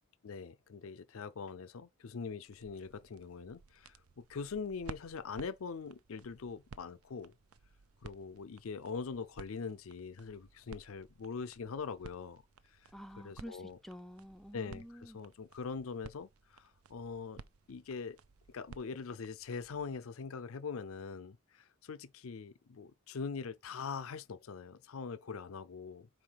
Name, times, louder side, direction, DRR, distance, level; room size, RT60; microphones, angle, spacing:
voice 1, 0.2-7.3 8.0-12.4 13.2-13.8 14.5-17.4 17.7-18.2 18.5-26.1, left 5 dB, 70° left, 0.5 m, -42 dB
sound 1, 2.4-20.0, right 4 dB, 80° right, 0.6 m, -56 dB
voice 2, 12.9-15.2, equal, ahead, 0.4 m, -49 dB
4.7 x 4.6 x 5.6 m
head